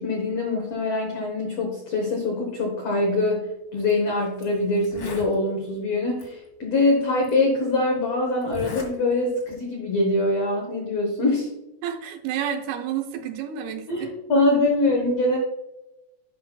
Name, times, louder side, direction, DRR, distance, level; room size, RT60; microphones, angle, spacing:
voice 1, 0.0-11.5 13.9-15.4, left 2 dB, 85° left, 0 dB, 1.4 m, -23 dB
Zipper (clothing), 3.8-3.9 4.4-4.5 4.8-5.3 6.2-6.3 7.2-7.3 8.4-8.9 9.3-9.6, left 2 dB, 60° left, 1.2 m, -37 dB
voice 2, 11.8-14.5, right 9 dB, 80° right, 5 dB, 2.6 m, -30 dB
10.0 x 5.8 x 2.3 m, 0.94 s
omnidirectional pair, 4.6 m